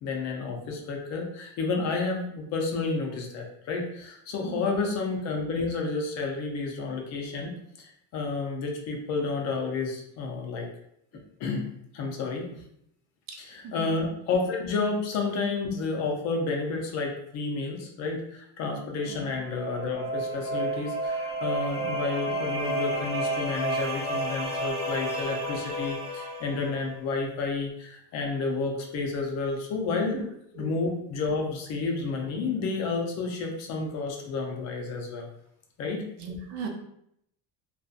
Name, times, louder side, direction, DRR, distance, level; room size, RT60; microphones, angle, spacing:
voice 1, 0.0-7.5 7.8-10.7 11.4-11.7 11.9-12.5 13.4-30.2 30.5-35.3 35.8-36.0, left 4 dB, 45° left, 1 dB, 0.4 m, -30 dB
voice 2, 4.4-4.8 13.6-13.9 19.1-19.4 30.1-30.2 30.5-30.7 36.2-36.7, right 5 dB, 80° right, 2 dB, 0.7 m, -37 dB
sound 1, 19.1-26.8, right 1 dB, 10° left, 0.7 m, -31 dB
2.6 x 2.2 x 2.3 m, 0.74 s
cardioid pair, 165°, 40 cm